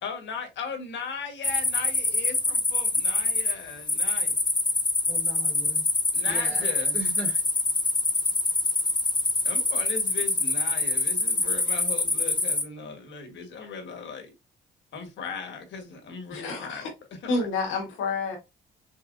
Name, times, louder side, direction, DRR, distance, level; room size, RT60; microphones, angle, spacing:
voice 1, 0.0-4.3 6.1-7.0 9.4-14.3 14.9-16.9 17.2-17.5, left 5 dB, 65° left, 1.4 m, -38 dB
sound 1, 1.4-12.6, left 3 dB, 20° left, 1.0 m, -25 dB
voice 2, 5.1-5.8 6.3-7.4, right 2 dB, 5° right, 1.1 m, -39 dB
voice 3, 16.3-16.9 17.3-18.4, left 3 dB, 85° left, 1.6 m, -29 dB
5.6 x 2.1 x 2.5 m
cardioid pair, 90°, 20 cm